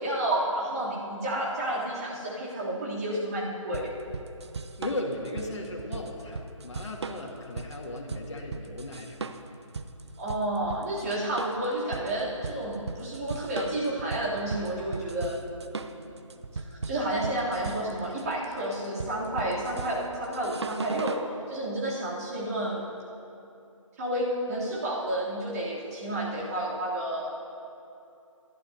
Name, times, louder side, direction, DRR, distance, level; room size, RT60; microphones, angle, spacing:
voice 1, 0.0-3.9 10.2-16.2 16.5-21.2 21.5-22.8 24.0-27.3, right 1 dB, 30° right, -7 dB, 3.1 m, -31 dB
sound 1, 3.7-21.3, right 4 dB, 55° right, 0.6 m, -38 dB
voice 2, 4.8-9.4, left 1 dB, 60° left, -2 dB, 2.2 m, -36 dB
24.5 x 11.5 x 2.8 m, 2.7 s
figure-of-eight pair, 155°, 17 cm